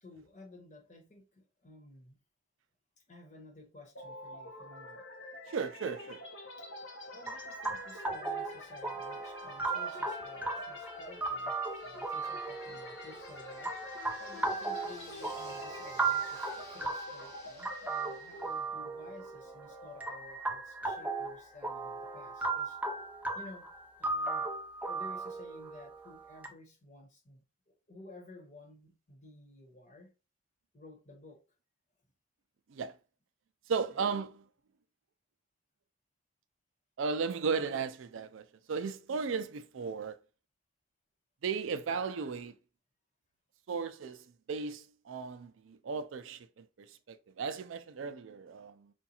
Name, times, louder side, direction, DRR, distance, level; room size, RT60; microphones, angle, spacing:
voice 1, 0.0-2.2 3.1-5.0 6.6-6.7 7.1-11.5 11.8-22.8 23.3-23.7 24.0-24.5 24.8-30.1 30.7-31.4 33.9-34.0, left 2 dB, 35° left, 1.1 m, -54 dB
sound 1, 4.0-21.7, left 1 dB, 70° left, 1.0 m, -48 dB
voice 2, 5.5-6.2 32.7-32.9 33.7-34.4 37.0-40.2 41.4-42.5 43.7-48.9, right 5 dB, 75° right, 0.4 m, -36 dB
sound 2, 7.3-26.5, right 3 dB, 10° right, 0.4 m, -37 dB
Yell, 9.7-11.2 11.8-18.5, left 1 dB, 15° left, 0.8 m, -50 dB
5.0 x 2.3 x 2.9 m
head